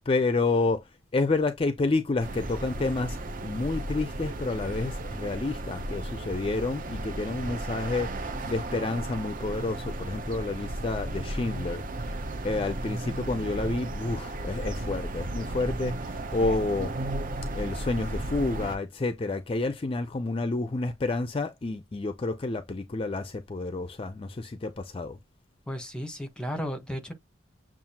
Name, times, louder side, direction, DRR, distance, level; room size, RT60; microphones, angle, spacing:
voice 1, 0.1-12.2 12.4-16.9 17.5-25.2, left 3 dB, 30° left, 0.4 m, -29 dB
sound 1, 2.2-18.8, right 1 dB, 45° right, 0.6 m, -34 dB
voice 2, 25.7-27.1, equal, 5° left, 1.1 m, -34 dB
7.1 x 2.4 x 2.8 m
head